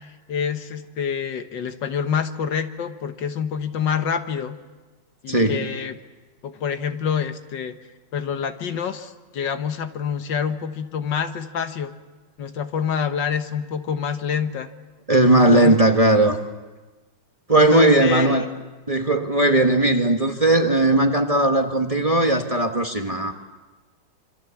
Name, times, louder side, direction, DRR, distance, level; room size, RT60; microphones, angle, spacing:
voice 1, 0.3-4.6 5.2-6.0 6.4-7.7 8.1-11.9 12.4-14.7 15.5-15.8 17.6-18.3, left 7 dB, 75° left, 8 dB, 1.9 m, -27 dB
voice 2, 5.3-5.6 15.1-16.4 17.5-18.4 18.9-23.3, right 1 dB, 20° right, 3 dB, 1.4 m, -18 dB
26.5 x 25.5 x 7.1 m, 1.2 s
omnidirectional pair, 2.0 m